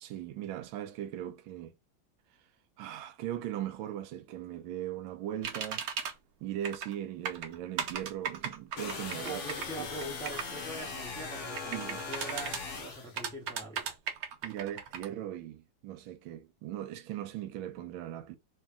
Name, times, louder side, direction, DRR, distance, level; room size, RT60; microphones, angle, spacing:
voice 1, 0.0-1.7 2.8-5.9 6.4-9.4 9.8-9.9 11.7-12.0 14.4-18.4, right 11 dB, 90° right, 1.4 m, -39 dB
sound 1, 5.4-6.1 6.6-6.9 7.2-10.5 11.5-12.6 13.2-15.1, right 7 dB, 65° right, 1.0 m, -36 dB
sound 2, 8.8-13.2, left 4 dB, 65° left, 0.7 m, -40 dB
voice 2, 9.2-13.9, right 1 dB, 5° left, 0.3 m, -43 dB
3.2 x 2.8 x 3.5 m
omnidirectional pair, 2.1 m